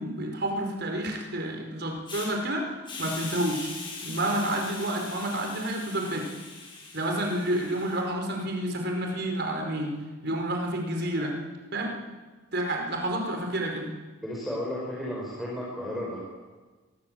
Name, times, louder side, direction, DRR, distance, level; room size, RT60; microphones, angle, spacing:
voice 1, 0.0-3.7 4.0-6.3 6.9-10.0 10.2-11.3 11.7-11.9 12.5-13.9, right 1 dB, 50° right, 2 dB, 5.0 m, -29 dB
Hiss, 2.1-2.3 2.8-8.0, left 3 dB, 25° left, 7.6 m, -41 dB
voice 2, 14.2-16.2, left 1 dB, ahead, -4 dB, 5.7 m, -33 dB
27.0 x 22.0 x 7.9 m, 1.3 s
head